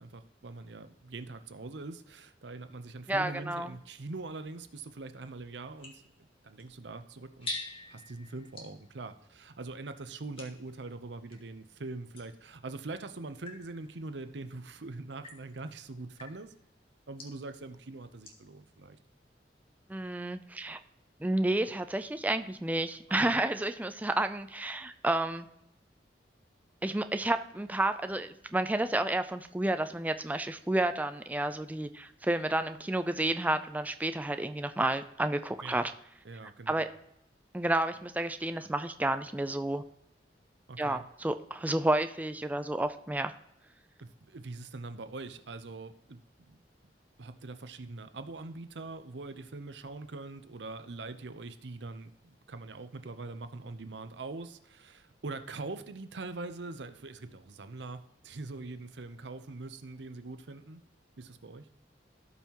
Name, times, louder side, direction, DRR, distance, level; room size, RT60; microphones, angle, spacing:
voice 1, 0.0-6.0 6.4-7.5 7.9-16.5 17.1-19.0 23.1-23.4 35.6-35.9 36.2-36.8 40.7-41.0 44.0-46.9 47.2-60.8 61.2-61.7, right 3 dB, 85° right, 10 dB, 0.7 m, -43 dB
voice 2, 3.1-3.7 19.9-20.8 21.2-25.5 26.8-35.9 36.7-36.9 37.5-39.8 40.8-43.3, right 1 dB, 10° right, 9 dB, 0.4 m, -31 dB
sound 1, 4.2-11.5 12.1-18.6, left 1 dB, 30° left, 1.9 m, -48 dB
16.5 x 5.6 x 3.0 m, 0.78 s
head